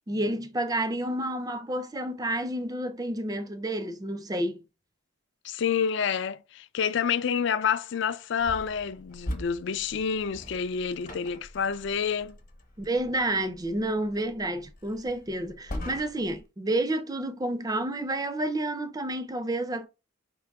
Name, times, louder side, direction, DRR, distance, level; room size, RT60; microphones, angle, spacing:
voice 1, 0.1-4.6 12.8-19.9, right 1 dB, 20° right, 0.4 m, -30 dB
voice 2, 5.4-12.4, left 7 dB, 60° left, 0.4 m, -28 dB
sound 1, 8.4-16.5, left 1 dB, 40° left, 1.0 m, -42 dB
4.6 x 2.9 x 3.4 m
head